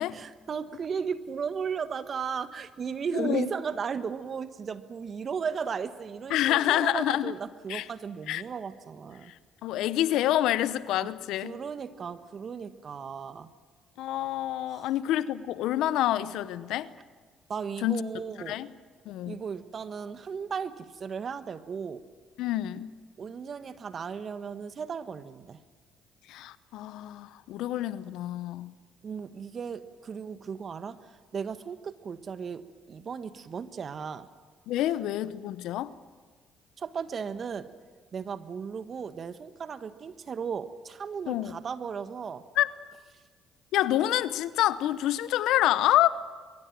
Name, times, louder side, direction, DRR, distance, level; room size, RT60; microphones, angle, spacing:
voice 1, 0.1-9.3 11.0-11.1 11.4-13.5 14.7-14.9 17.5-18.6 19.3-22.0 23.2-25.6 29.0-34.3 36.8-37.7 38.1-42.4, right 6 dB, 50° right, 1.4 m, -35 dB
voice 2, 3.1-3.5 6.3-7.3 7.7-7.9 8.3-8.4 9.3-9.4 9.6-11.6 14.0-16.9 17.8-18.0 18.5-18.7 19.1-19.4 22.4-22.9 26.3-28.7 34.7-35.9 41.3-41.5 42.6-42.7 43.7-46.1, left 13 dB, 75° left, 0.8 m, -27 dB
23.0 x 23.0 x 7.6 m
hypercardioid pair, 60°, 0 cm